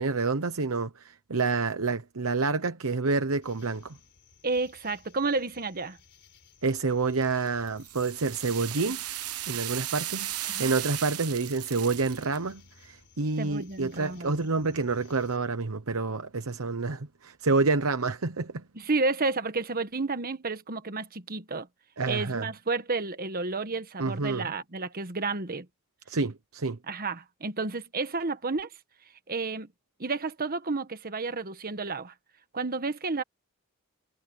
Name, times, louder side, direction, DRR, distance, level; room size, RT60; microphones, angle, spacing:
voice 1, 0.0-4.0 6.6-9.0 9.5-18.6 22.0-22.5 24.0-24.5 26.1-26.8, right 3 dB, 70° right, 1.0 m, -28 dB
sound 1, 3.4-15.4, left 5 dB, 55° left, 4.7 m, -58 dB
voice 2, 4.4-6.0 10.5-10.8 13.4-14.5 18.7-21.7 22.1-25.7 26.9-28.7 29.3-29.7 30.0-32.1 32.5-33.2, right 3 dB, 40° right, 1.4 m, -31 dB
sound 2, 7.2-12.4, right 14 dB, 85° right, 1.2 m, -36 dB
head